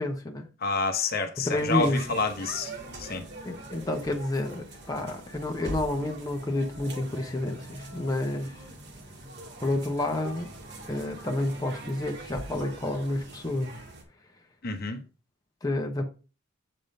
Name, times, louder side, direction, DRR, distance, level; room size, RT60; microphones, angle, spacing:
voice 1, 0.0-0.5 1.4-2.0 3.4-8.6 9.6-10.5 10.9-13.8 15.6-16.0, left 1 dB, 20° left, 0.8 m, -30 dB
voice 2, 0.6-2.7 3.0-3.2 14.6-15.0, left 4 dB, 50° left, 0.9 m, -28 dB
sound 1, 1.5-14.0, right 1 dB, 55° right, 1.7 m, -43 dB
7.7 x 3.6 x 5.2 m
head